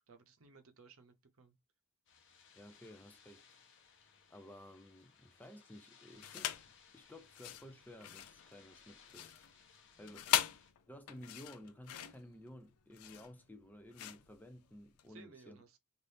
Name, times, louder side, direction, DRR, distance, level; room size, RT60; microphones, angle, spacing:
voice 1, 0.1-1.6 9.9-10.2 15.1-15.8, right 4 dB, 65° right, 0.7 m, -60 dB
sound 1, 2.1-10.7, left 6 dB, 60° left, 0.8 m, -64 dB
voice 2, 2.6-3.4 4.3-6.5 6.9-9.3 10.0-10.5 10.9-15.6, left 1 dB, 10° left, 0.4 m, -54 dB
sound 2, 6.2-6.7 7.2-15.1, left 11 dB, 80° left, 0.4 m, -40 dB
3.4 x 2.5 x 2.6 m
head